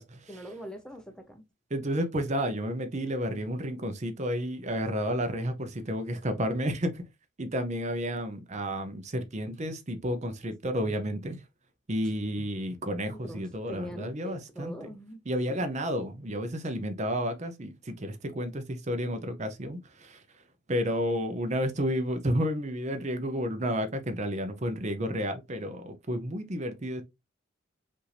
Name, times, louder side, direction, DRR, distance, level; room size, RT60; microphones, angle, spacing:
voice 1, 0.3-1.4 13.2-15.2 15.5-15.7, right 1 dB, 5° left, 0.7 m, -42 dB
voice 2, 1.7-7.0 7.4-11.4 11.9-14.7 15.3-20.2 20.7-27.0, equal, 35° right, 0.7 m, -31 dB
5.3 x 2.6 x 3.3 m
head